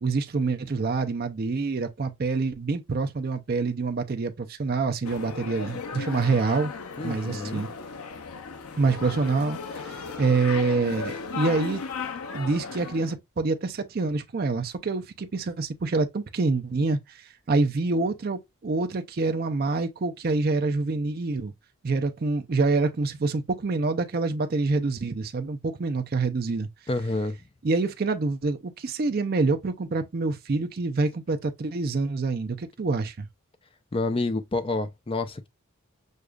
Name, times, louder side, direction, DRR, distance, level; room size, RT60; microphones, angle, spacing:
voice 1, 0.0-6.7 7.0-7.7 8.8-11.8 12.3-21.5 21.8-26.7 27.6-33.3, right 3 dB, 45° right, 0.4 m, -26 dB
sound 1, 5.0-13.1, left 5 dB, 90° left, 0.6 m, -36 dB
voice 2, 7.0-7.6 26.9-27.4 33.9-35.5, left 2 dB, 25° left, 0.4 m, -28 dB
6.4 x 2.3 x 2.2 m
head